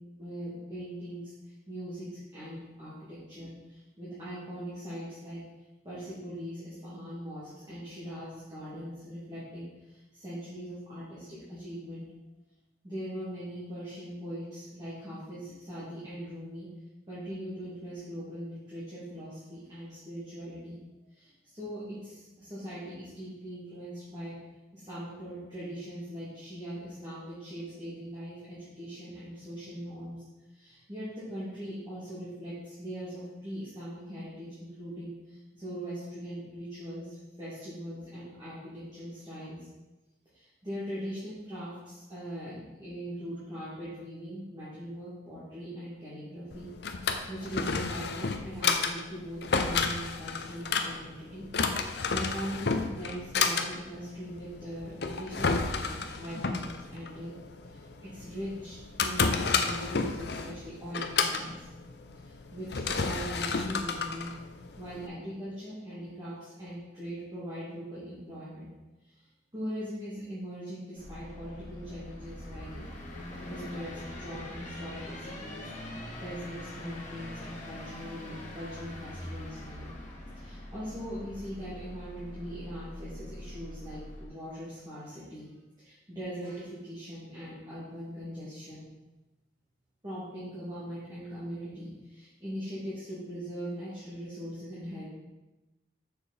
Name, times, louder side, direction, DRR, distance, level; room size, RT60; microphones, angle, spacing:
voice 1, 0.2-1.3 1.7-2.1 2.3-5.4 5.8-12.0 12.8-16.7 17.1-20.8 21.1-24.3 24.7-30.2 30.5-39.7 40.3-46.7 47.3-57.3 57.7-61.5 62.2-64.3 64.8-68.7 69.5-72.8 73.4-75.7 76.2-79.9 80.3-85.5 85.8-88.9 90.0-95.1, equal, 25° right, -12 dB, 2.7 m, -41 dB
Drawer open or close, 46.5-65.1, left 4 dB, 60° left, 0.7 m, -31 dB
sound 1, 71.0-84.2, left 1 dB, 40° left, 1.7 m, -43 dB
6.9 x 6.8 x 4.3 m, 1.0 s
head